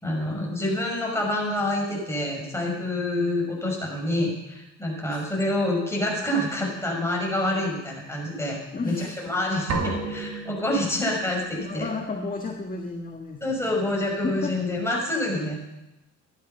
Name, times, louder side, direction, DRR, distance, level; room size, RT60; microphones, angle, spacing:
voice 1, 0.0-11.9 13.4-15.6, left 1 dB, 10° left, -2 dB, 5.7 m, -27 dB
voice 2, 8.7-9.2 11.6-13.7 14.2-14.6, left 3 dB, 30° left, 2 dB, 1.5 m, -32 dB
sound 1, 9.7-11.5, right 4 dB, 70° right, 2.5 m, -32 dB
14.0 x 11.0 x 5.5 m, 0.94 s
cardioid pair, 90°, 30 cm